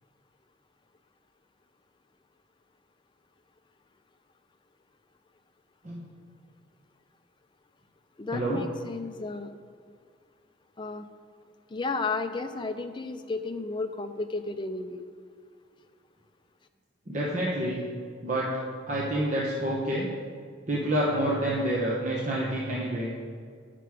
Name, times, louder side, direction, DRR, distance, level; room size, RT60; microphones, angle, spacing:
voice 1, 8.2-9.5 10.8-11.1 11.7-15.0, left 3 dB, 25° left, 7 dB, 0.4 m, -33 dB
voice 2, 17.1-17.8 18.2-18.5 18.9-20.1 20.7-23.1, right 1 dB, 40° right, -5 dB, 1.0 m, -28 dB
10.0 x 5.9 x 4.8 m, 2.1 s
head